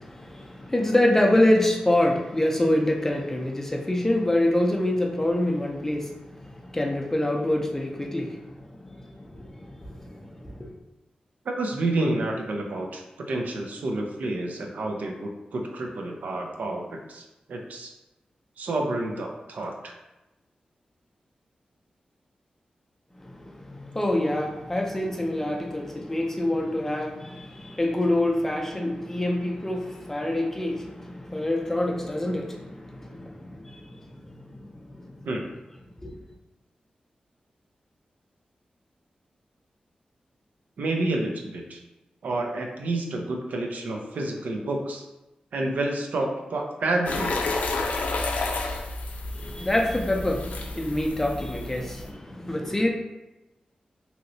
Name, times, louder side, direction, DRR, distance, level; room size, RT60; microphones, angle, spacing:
voice 1, 0.0-10.7 23.2-35.3 36.0-36.2 49.3-52.9, left 1 dB, 15° left, 0 dB, 0.5 m, -26 dB
voice 2, 11.5-17.9 18.6-19.9 35.2-35.5 40.8-41.8 42.2-45.0 45.5-47.3, right 2 dB, 80° right, 2 dB, 0.5 m, -29 dB
Piss Toilet, 47.1-52.1, left 3 dB, 85° left, 0.4 m, -30 dB
3.0 x 2.7 x 2.6 m, 0.99 s
wide cardioid pair, 105°, 3 cm